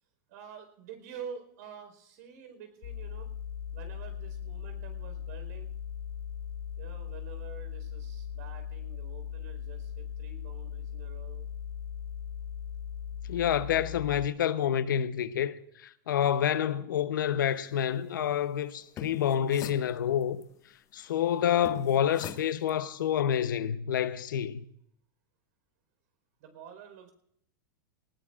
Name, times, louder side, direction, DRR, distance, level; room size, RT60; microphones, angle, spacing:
voice 1, 0.3-3.3 3.7-5.7 6.8-11.5 21.1-21.4 26.4-27.1, right 7 dB, 60° right, 4.4 m, -48 dB
sound 1, 2.8-14.3, left 8 dB, 65° left, 2.2 m, -39 dB
voice 2, 13.3-20.4 20.9-24.6, left 9 dB, 90° left, 0.9 m, -28 dB
sound 2, 18.8-20.4 21.7-22.8, left 11 dB, 30° left, 0.7 m, -43 dB
19.5 x 19.0 x 2.5 m
supercardioid pair, 145°, 10 cm